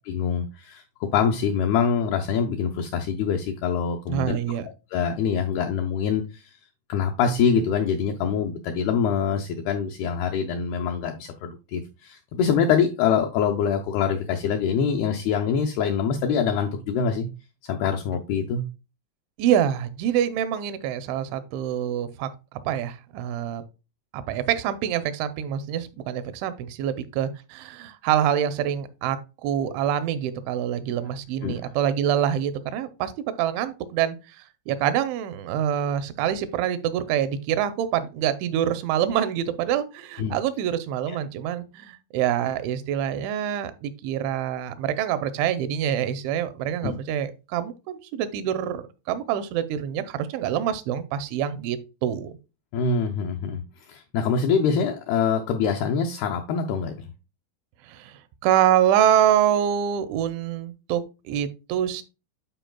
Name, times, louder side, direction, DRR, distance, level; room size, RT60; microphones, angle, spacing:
voice 1, 0.1-4.4 4.9-6.6 6.9-17.3 17.6-18.6 31.4-31.5 40.2-40.3 41.1-41.2 46.8-46.9 52.7-57.1, left 6 dB, 80° left, 2.2 m, -24 dB
voice 2, 4.1-4.7 19.4-22.3 22.7-23.6 24.1-33.1 33.4-34.4 34.7-52.4 57.9-62.0, right 10 dB, 85° right, 3.1 m, -26 dB
11.5 x 4.8 x 2.3 m
omnidirectional pair, 5.3 m